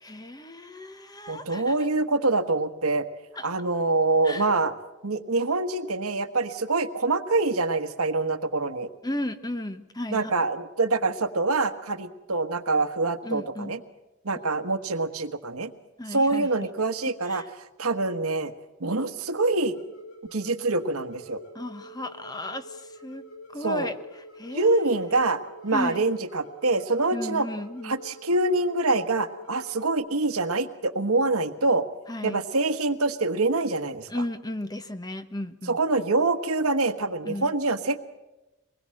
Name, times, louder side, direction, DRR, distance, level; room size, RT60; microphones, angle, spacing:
voice 1, 0.0-1.7 3.4-3.5 4.2-4.5 9.0-10.3 13.2-13.7 16.0-16.5 17.3-17.5 21.5-23.2 23.5-24.0 24.4-25.1 25.7-26.0 27.1-27.9 32.1-32.4 34.1-35.8 37.2-37.5, left 1 dB, 15° left, 10 dB, 1.0 m, -34 dB
voice 2, 1.3-3.1 3.4-4.7 5.0-8.9 10.1-13.8 14.2-15.7 16.1-17.4 17.8-18.5 18.8-19.8 20.3-21.4 23.6-23.9 24.5-27.5 27.8-31.8 32.2-34.2 35.6-38.0, right 3 dB, 75° right, 8 dB, 1.4 m, -25 dB
sound 1, 19.7-29.9, equal, 70° left, 5.6 m, -46 dB
25.0 x 20.5 x 7.7 m, 1.0 s
head